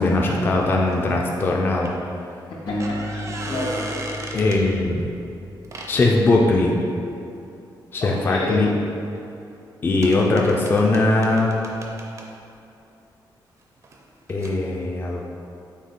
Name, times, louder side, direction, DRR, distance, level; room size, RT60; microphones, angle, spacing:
voice 1, 0.0-1.9 4.3-5.1 5.9-6.7 7.9-8.7 9.8-11.5 14.3-15.2, left 2 dB, 25° left, -1 dB, 0.3 m, -20 dB
sound 1, 0.6-1.4 1.8-1.9 2.6-4.6 5.6-5.9 9.2-9.3 9.5-9.6 10.0-12.3 13.8-14.0 14.3-14.6, right 2 dB, 40° right, 0.4 m, -36 dB
voice 2, 2.7-4.4 8.0-8.7, left 1 dB, 90° left, -4 dB, 0.9 m, -30 dB
sound 2, 2.7-5.9, left 1 dB, 55° left, 0.9 m, -32 dB
6.3 x 2.2 x 3.6 m, 2.7 s
wide cardioid pair, 170°, 8 cm